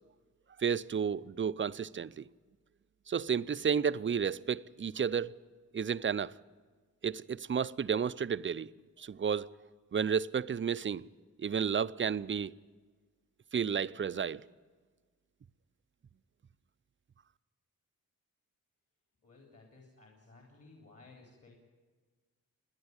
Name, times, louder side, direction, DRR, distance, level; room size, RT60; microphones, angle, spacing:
voice 1, 0.6-2.2 3.1-5.3 5.7-6.3 7.0-8.7 9.0-9.5 9.9-11.0 11.4-12.5 13.5-14.4, right 7 dB, 35° right, 0.5 m, -32 dB
voice 2, 19.2-21.6, left 3 dB, 45° left, 3.9 m, -57 dB
29.0 x 11.0 x 9.6 m
wide cardioid pair, 135°, 34 cm